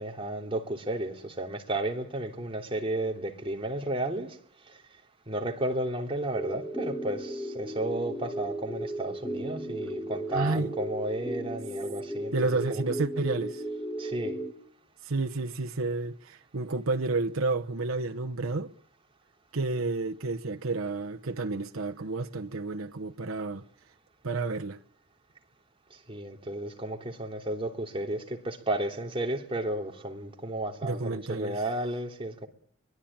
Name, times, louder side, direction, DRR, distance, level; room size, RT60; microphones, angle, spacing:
voice 1, 0.0-4.8 5.3-12.8 14.0-14.4 25.9-32.5, right 1 dB, 25° right, 3.1 m, -33 dB
sound 1, 6.3-14.5, right 1 dB, 10° left, 2.3 m, -35 dB
voice 2, 10.3-10.7 12.3-13.6 15.0-18.7 19.5-23.6 24.2-24.8 30.8-31.6, right 3 dB, 90° right, 1.0 m, -30 dB
24.0 x 20.5 x 8.8 m
head